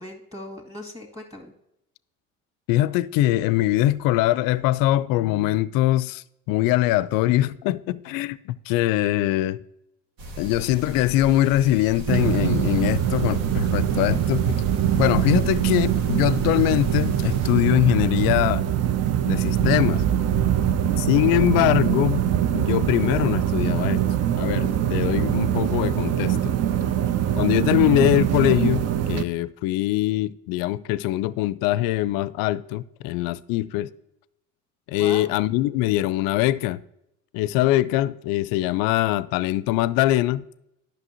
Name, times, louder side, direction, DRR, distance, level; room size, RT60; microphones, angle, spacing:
voice 1, 0.0-1.5 26.8-27.3 35.0-35.3, left 1 dB, 10° right, 2.1 m, -39 dB
voice 2, 2.7-8.4 8.7-9.6 10.4-14.6 15.0-18.6 19.3-20.0 21.0-22.2 22.5-24.0 24.3-26.6 27.4-33.9 34.9-36.8 37.3-40.4, left 15 dB, 60° left, 0.5 m, -22 dB
sound 1, 10.2-17.5, right 1 dB, 60° right, 1.4 m, -37 dB
sound 2, 12.1-29.2, right 10 dB, 40° right, 0.5 m, -23 dB
11.5 x 5.9 x 2.8 m
hypercardioid pair, 55°, 39 cm